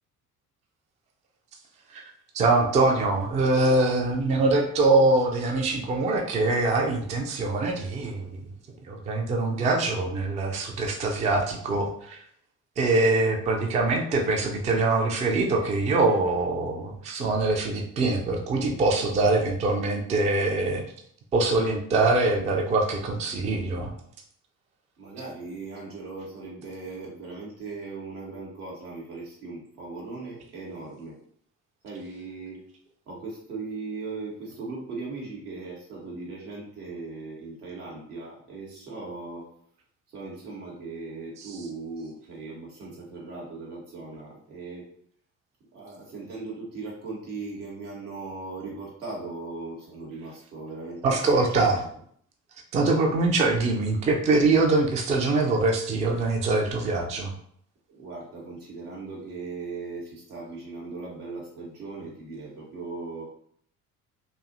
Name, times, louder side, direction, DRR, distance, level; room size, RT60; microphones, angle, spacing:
voice 1, 2.3-8.4 8.9-12.2 12.8-20.8 21.3-23.9 41.4-41.5 51.0-51.8 52.7-57.3, right 3 dB, 20° right, 2 dB, 0.3 m, -23 dB
voice 2, 25.0-31.2 31.8-32.7 33.1-39.5 40.1-44.9 45.7-51.9 57.9-63.3, right 3 dB, 85° right, -4 dB, 0.9 m, -38 dB
2.5 x 2.1 x 2.4 m, 0.63 s
figure-of-eight pair, 55°, 45 cm